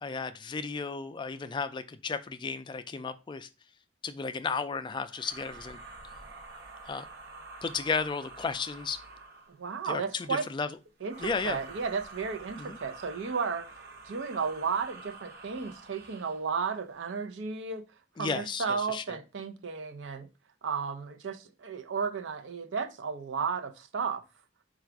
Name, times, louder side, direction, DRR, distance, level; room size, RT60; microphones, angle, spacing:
voice 1, 0.0-3.5 4.0-5.8 6.9-7.0 7.6-9.0 9.8-10.7 11.2-11.6 12.6-12.8 18.2-19.2, left 5 dB, 25° left, 0.3 m, -34 dB
sound 1, 5.1-9.6 11.0-16.5, right 3 dB, 60° right, 0.8 m, -47 dB
voice 2, 9.5-10.5 11.0-17.8 18.2-20.3 20.6-24.2, right 5 dB, 90° right, 0.6 m, -33 dB
4.9 x 2.4 x 4.5 m
head